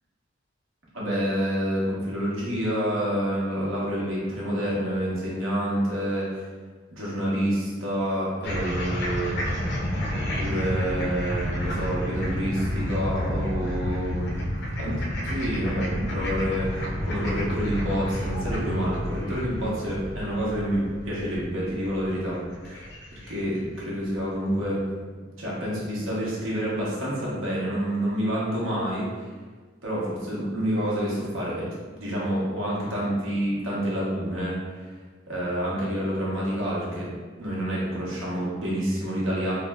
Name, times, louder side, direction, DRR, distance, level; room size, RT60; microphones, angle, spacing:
voice 1, 0.9-6.4 6.9-9.6 10.3-14.3 14.8-14.9 15.2-22.4 22.6-22.9 23.3-24.8 25.4-29.3 29.8-31.7 32.0-34.9 35.3-37.1 37.4-39.5, equal, 90° right, -6 dB, 1.1 m, -28 dB
sound 1, 8.4-23.8, equal, 60° left, 0.6 m, -30 dB
3.4 x 2.1 x 3.5 m, 1.4 s
head